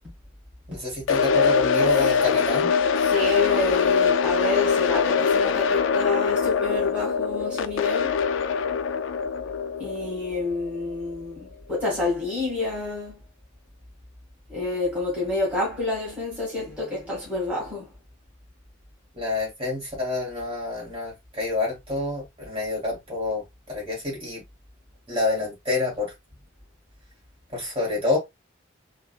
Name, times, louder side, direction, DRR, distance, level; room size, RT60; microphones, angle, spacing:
voice 1, 0.7-2.7 19.1-24.4 25.1-26.1 27.5-28.2, left 2 dB, 30° right, 1.8 m, -28 dB
sound 1, 1.1-11.1, left 6 dB, 65° left, 0.3 m, -23 dB
voice 2, 3.0-8.2 9.8-13.2 14.5-17.9, left 3 dB, 5° right, 1.6 m, -28 dB
3.6 x 2.5 x 2.2 m
head